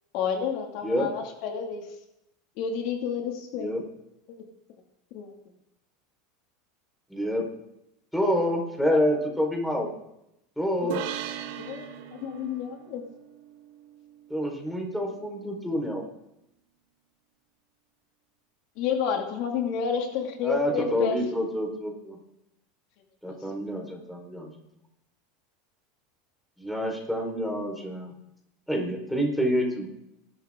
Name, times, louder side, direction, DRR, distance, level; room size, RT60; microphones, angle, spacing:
voice 1, 0.1-1.9 2.6-3.7 5.1-5.3 10.8-11.0 11.6-11.9 12.2-13.0 18.8-21.2, left 7 dB, 60° left, 3 dB, 2.4 m, -30 dB
voice 2, 7.1-7.4 8.1-9.9 10.6-11.0 14.3-16.0 20.4-22.2 23.2-24.5 26.6-28.1 28.7-29.9, equal, ahead, 1 dB, 4.4 m, -27 dB
sound 1, 10.9-14.4, right 10 dB, 70° right, 1.8 m, -39 dB
27.5 x 12.0 x 3.8 m, 0.86 s
supercardioid pair, 120°, 0 cm